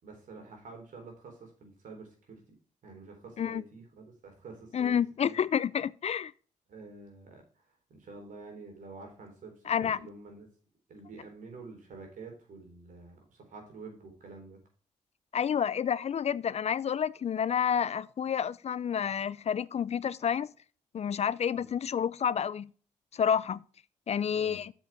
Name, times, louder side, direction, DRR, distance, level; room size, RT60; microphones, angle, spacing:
voice 1, 0.0-2.6 2.8-5.4 6.7-7.6 7.9-10.5 10.9-14.6 21.5-21.7 24.3-24.6, right 3 dB, 75° right, 3.9 m, -48 dB
voice 2, 4.7-6.3 9.7-10.0 15.3-20.5 20.9-22.7 23.1-23.6 24.1-24.7, left 8 dB, 50° left, 0.4 m, -29 dB
7.7 x 6.5 x 4.7 m
supercardioid pair, 50°, 14 cm